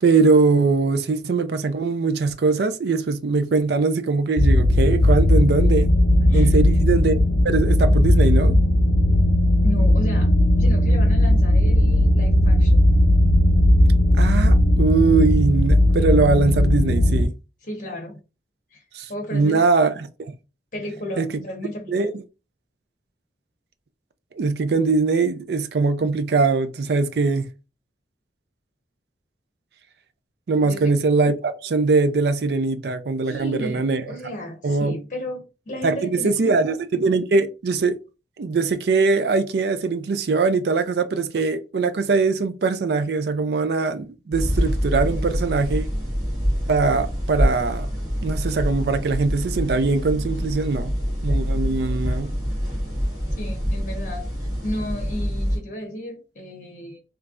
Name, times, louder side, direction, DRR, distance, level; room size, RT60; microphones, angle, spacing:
voice 1, 0.0-5.9 6.3-8.6 14.2-17.4 18.9-20.3 21.2-21.3 21.9-22.2 24.4-27.5 30.5-34.0 34.6-35.0 35.8-38.0 38.4-45.9 46.7-47.9 48.2-51.0 51.2-52.3, right 4 dB, 65° right, 0.4 m, -21 dB
sound 1, 4.4-17.3, left 1 dB, 80° left, 0.6 m, -17 dB
voice 2, 6.3-6.6 9.6-10.3 10.6-12.8 17.6-18.2 18.7-18.8 19.1-19.7 20.7-22.1 30.6-30.9 33.2-36.6 53.4-54.2 54.6-57.0, equal, 45° left, 1.1 m, -33 dB
sound 2, 44.3-55.6, equal, 20° right, 1.8 m, -25 dB
3.3 x 3.2 x 2.4 m
head